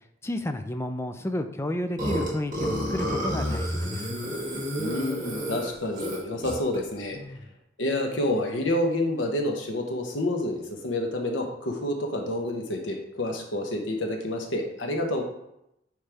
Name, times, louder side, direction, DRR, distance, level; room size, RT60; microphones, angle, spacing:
voice 1, 0.2-4.2 7.2-7.4, left 1 dB, 15° left, 8 dB, 0.4 m, -31 dB
Burping eructation, 2.0-6.8, equal, 40° right, 2.0 m, -30 dB
voice 2, 4.8-7.2 7.8-15.2, left 1 dB, 80° left, 3 dB, 1.0 m, -28 dB
9.3 x 3.3 x 3.4 m, 0.83 s
head